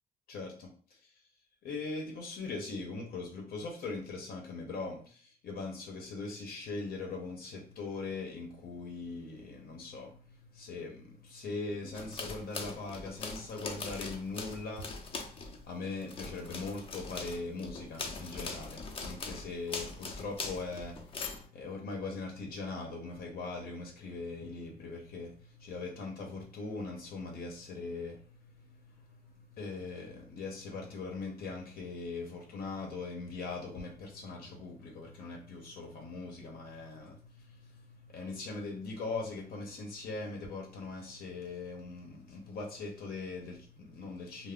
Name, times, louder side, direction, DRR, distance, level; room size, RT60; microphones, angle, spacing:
voice 1, 0.3-1.1 1.6-44.5, left 3 dB, 80° left, 1 dB, 0.7 m, -41 dB
sound 1, 11.9-15.6 16.0-21.5, left 4 dB, 35° left, 0.5 m, -41 dB
2.4 x 2.0 x 3.5 m, 0.44 s
cardioid pair, 130°, 15 cm